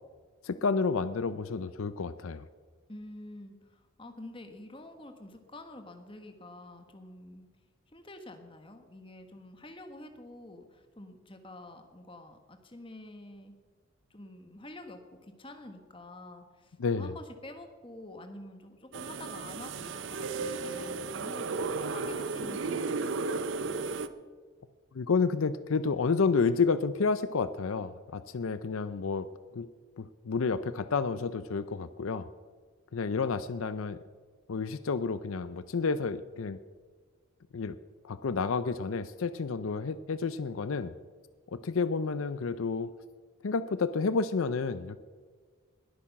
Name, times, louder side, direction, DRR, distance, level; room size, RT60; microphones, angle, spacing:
voice 1, 0.4-2.4 16.8-17.1 24.9-29.3 29.5-29.7 30.0-32.3 32.9-34.0 34.5-36.6 37.5-37.8 38.0-40.9 41.5-42.9 43.4-45.0, left 4 dB, 80° left, 13 dB, 0.5 m, -30 dB
voice 2, 2.9-7.5 7.9-13.5 14.1-23.5, left 1 dB, 25° left, 6 dB, 1.3 m, -48 dB
sound 1, 18.9-24.1, right 4 dB, 65° right, 0.6 m, -34 dB
20.0 x 8.7 x 6.0 m, 1.5 s
head